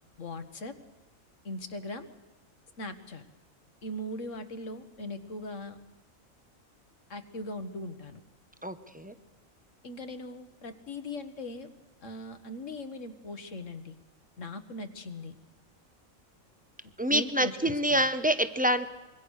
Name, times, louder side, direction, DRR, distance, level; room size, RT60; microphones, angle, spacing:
voice 1, 0.2-0.7 1.4-2.1 2.8-3.2 3.8-5.8 7.1-8.2 9.8-11.7 12.0-14.0 14.4-15.3 17.1-18.0, left 1 dB, 65° left, 9 dB, 1.8 m, -39 dB
voice 2, 8.6-9.1 17.0-18.9, equal, 5° right, 11 dB, 0.8 m, -26 dB
25.5 x 23.0 x 6.5 m, 1.2 s
omnidirectional pair, 1.4 m